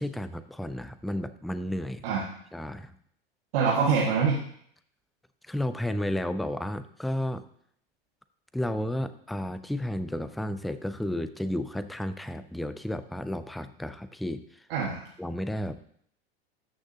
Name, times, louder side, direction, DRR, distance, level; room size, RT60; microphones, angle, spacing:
voice 1, 0.0-2.1 2.5-2.9 5.5-7.4 8.5-14.6 15.2-15.8, left 1 dB, ahead, 12 dB, 0.3 m, -32 dB
voice 2, 3.5-4.4 14.7-15.1, right 5 dB, 75° right, -5 dB, 1.8 m, -25 dB
13.0 x 6.3 x 2.8 m, 0.65 s
hypercardioid pair, 95°, 30 cm